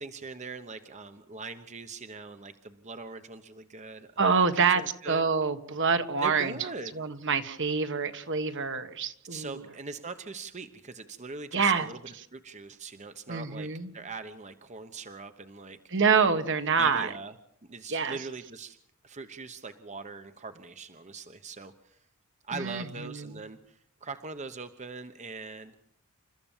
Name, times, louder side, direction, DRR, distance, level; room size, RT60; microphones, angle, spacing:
voice 1, 0.0-5.2 6.2-6.9 9.3-12.0 12.3-13.7 13.9-15.8 16.8-17.3 17.6-18.8 19.0-22.0 22.5-25.8, right 4 dB, 35° right, 9 dB, 1.0 m, -41 dB
voice 2, 4.2-4.8 5.1-6.6 6.9-9.6 11.5-11.9 13.3-13.9 15.9-17.1 17.9-18.2 22.5-23.3, right 5 dB, 60° right, 9 dB, 1.6 m, -26 dB
29.0 x 14.0 x 7.4 m, 0.72 s
head